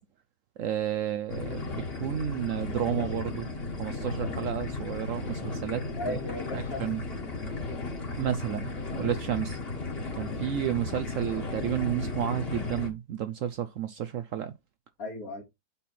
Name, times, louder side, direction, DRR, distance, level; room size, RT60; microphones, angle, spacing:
voice 1, 0.6-3.5 3.8-6.2 6.5-7.0 8.2-9.6 10.2-14.5, right 10 dB, 65° right, 0.8 m, -31 dB
sound 1, 1.3-12.9, left 3 dB, 35° left, 2.0 m, -35 dB
voice 2, 6.0-7.2 15.0-15.4, left 2 dB, 60° left, 2.6 m, -37 dB
5.5 x 4.2 x 5.8 m
omnidirectional pair, 1.7 m